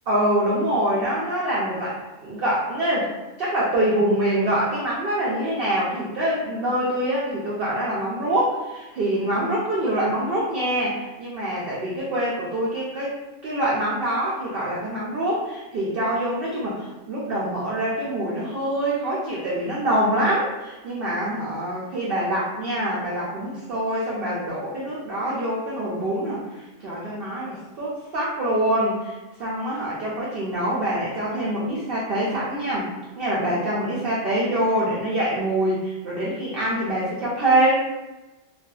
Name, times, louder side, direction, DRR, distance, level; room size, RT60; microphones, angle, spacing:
voice 1, 0.1-13.2 13.4-37.8, right 1 dB, 60° right, -6 dB, 0.6 m, -25 dB
2.5 x 2.3 x 2.2 m, 1.1 s
omnidirectional pair, 1.3 m